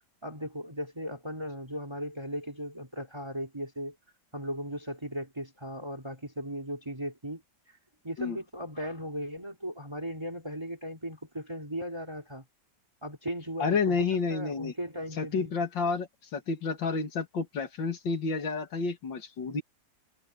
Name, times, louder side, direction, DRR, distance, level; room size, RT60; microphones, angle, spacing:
voice 1, 0.2-4.0 4.3-7.8 8.0-12.5 13.0-15.5, equal, 15° right, 3.7 m, -37 dB
voice 2, 13.6-14.7 15.2-19.6, left 4 dB, 75° left, 2.8 m, -30 dB
omnidirectional pair, 2.0 m